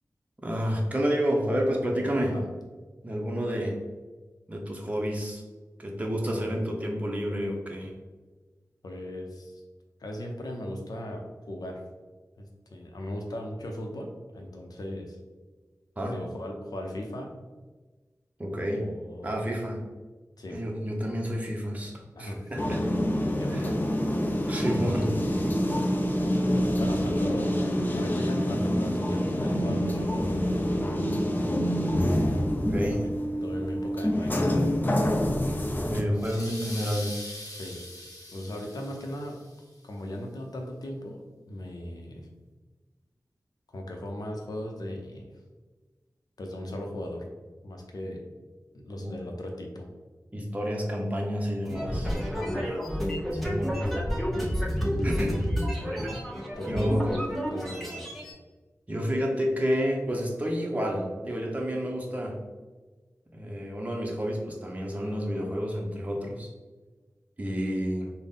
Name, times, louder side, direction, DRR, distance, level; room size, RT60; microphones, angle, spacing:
voice 1, 0.4-2.4 3.0-3.8 4.5-5.4 5.8-7.9 16.0-16.2 18.4-18.8 19.2-19.8 20.5-21.9 22.2-22.8 23.5-23.7 24.5-25.1 32.6-33.0 35.9-37.1 49.0-49.2 50.3-52.1 53.3-53.8 55.0-55.4 56.0-56.1 56.7-57.1 58.9-62.4 63.3-66.5 67.4-68.1, equal, 20° right, 0 dB, 0.6 m, -29 dB
voice 2, 8.8-9.6 10.0-11.8 12.4-15.2 16.0-17.3 18.6-19.4 20.4-20.6 22.2-22.5 23.1-23.8 24.4-25.6 26.7-27.6 27.9-30.5 31.0-31.8 32.9-33.1 33.4-34.8 37.6-37.8 38.3-39.4 39.8-42.3 43.7-45.3 46.4-47.3 47.6-48.2 48.7-49.9 52.3-52.7 55.7-56.0 56.6-58.0, left 1 dB, 85° left, 2 dB, 0.6 m, -38 dB
sound 1, 22.6-36.0, equal, 30° left, 0.5 m, -26 dB
sound 2, 36.2-39.6, left 1 dB, 55° left, 1.0 m, -42 dB
sound 3, 51.6-58.3, equal, 5° left, 0.9 m, -30 dB
3.9 x 2.1 x 3.5 m, 1.3 s
wide cardioid pair, 50°, 6 cm